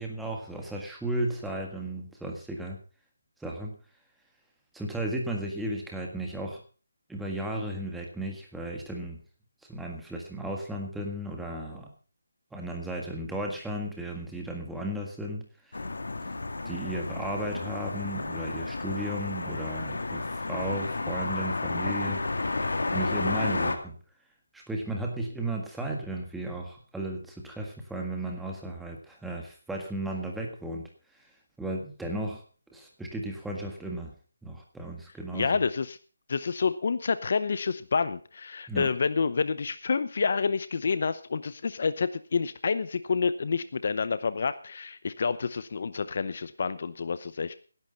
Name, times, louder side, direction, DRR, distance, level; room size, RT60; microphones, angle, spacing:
voice 1, 0.0-2.8 3.4-3.7 4.7-6.6 7.1-9.2 9.7-11.9 12.5-15.8 16.6-22.2 22.9-23.9 24.5-30.9 31.6-32.4 32.7-34.1 34.4-35.6 38.7-38.9, right 1 dB, ahead, 1 dB, 1.7 m, -35 dB
sound 1, 15.7-23.8, left 3 dB, 80° left, 2.5 m, -31 dB
voice 2, 35.3-36.0 36.3-47.5, left 5 dB, 45° left, 14 dB, 0.7 m, -28 dB
17.0 x 11.0 x 4.0 m, 0.38 s
hypercardioid pair, 170°, 0 cm